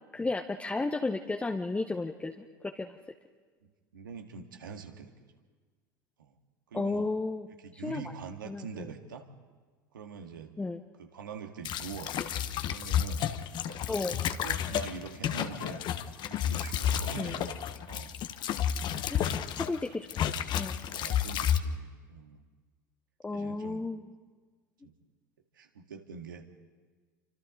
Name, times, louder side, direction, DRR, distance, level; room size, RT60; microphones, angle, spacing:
voice 1, 0.1-2.9 6.7-7.5 7.8-8.0 8.5-8.6 10.6-10.8 13.9-14.1 17.2-17.3 19.1-19.3 19.6-20.1 20.5-20.8 23.2-24.0, left 3 dB, 10° left, 3 dB, 1.1 m, -33 dB
voice 2, 3.9-5.3 6.2-6.3 6.7-7.1 7.6-9.3 9.9-10.5 11.0-12.1 12.7-13.3 13.7-15.8 16.3-18.1 19.3-19.7 20.9-22.4 23.3-23.8 24.8-24.9 25.5-26.5, right 6 dB, 80° right, 4 dB, 1.9 m, -44 dB
sound 1, 11.6-19.8 20.1-21.6, left 9 dB, 45° left, 1.1 m, -31 dB
28.0 x 25.5 x 3.9 m, 1.5 s
hypercardioid pair, 75°, 11 cm